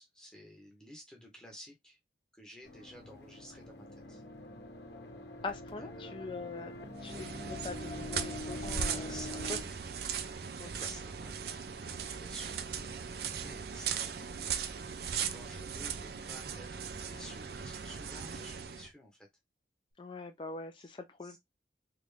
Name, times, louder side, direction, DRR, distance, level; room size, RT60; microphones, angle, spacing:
voice 1, 0.0-2.0 2.3-4.2 5.8-6.2 7.1-7.3 9.1-9.7 10.8-11.5 12.2-12.6 13.1-14.6 15.3-19.3 20.8-20.9 21.2-21.4, equal, 5° left, 0.8 m, -52 dB
sound 1, 2.6-9.6, left 2 dB, 75° left, 1.0 m, -45 dB
voice 2, 5.4-9.1 9.5-9.6 10.6-10.9 20.0-21.4, left 3 dB, 30° left, 0.4 m, -43 dB
sound 2, 7.0-18.9, right 7 dB, 60° right, 0.4 m, -38 dB
3.3 x 2.5 x 3.1 m
head